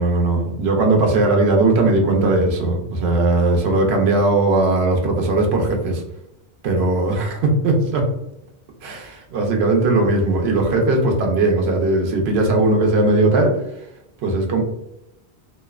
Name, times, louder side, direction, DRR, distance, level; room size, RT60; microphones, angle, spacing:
voice 1, 0.0-6.0 6.6-8.1 8.8-13.9 14.2-14.6, right 2 dB, 70° right, 2 dB, 0.8 m, -18 dB
2.6 x 2.1 x 2.3 m, 0.85 s
omnidirectional pair, 1.1 m